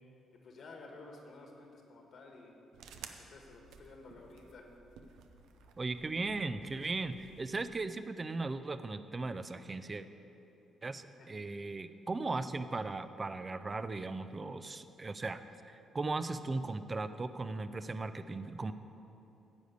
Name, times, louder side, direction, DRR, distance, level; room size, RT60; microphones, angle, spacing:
voice 1, 0.4-2.5 3.2-4.7 11.2-11.4, left 3 dB, 60° left, 2 dB, 1.5 m, -52 dB
sound 1, 2.7-7.9, right 6 dB, 85° right, 0.6 m, -55 dB
voice 2, 5.8-10.1 10.8-18.7, right 3 dB, 30° right, 12 dB, 0.4 m, -37 dB
10.5 x 5.0 x 8.0 m, 2.9 s
cardioid pair, 90°, 0 cm